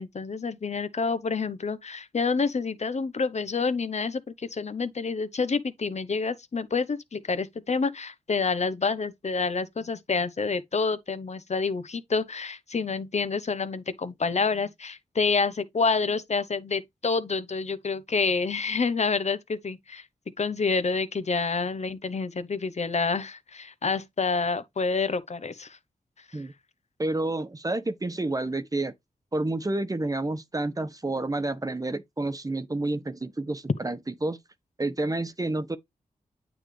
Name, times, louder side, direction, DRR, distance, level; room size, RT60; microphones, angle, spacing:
voice 1, 0.0-20.0 20.4-25.8, left 4 dB, 50° left, 0.9 m, -28 dB
voice 2, 27.0-28.9 29.3-34.4 34.8-35.8, right 2 dB, 25° right, 1.1 m, -29 dB
9.0 x 3.3 x 3.2 m
cardioid pair, 60°, 14 cm